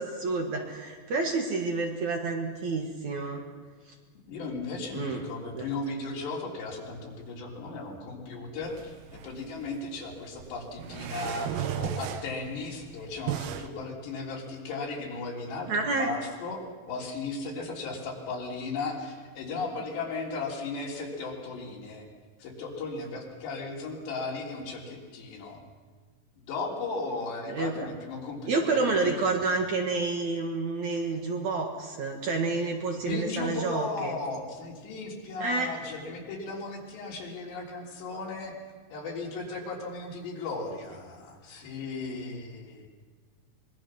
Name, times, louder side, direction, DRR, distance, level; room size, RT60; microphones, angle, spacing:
voice 1, 0.0-3.4 4.9-5.2 5.5-5.7 15.7-16.1 27.5-27.9 28.5-34.2 35.4-35.7, right 3 dB, 55° right, 2 dB, 2.5 m, -29 dB
voice 2, 4.3-22.1 22.4-25.6 26.4-29.4 33.0-38.6 38.9-42.9, left 3 dB, 85° left, -1 dB, 5.6 m, -36 dB
sound 1, 8.6-13.7, right 10 dB, 70° right, 2.7 m, -36 dB
24.5 x 22.5 x 6.2 m, 1.5 s
omnidirectional pair, 4.8 m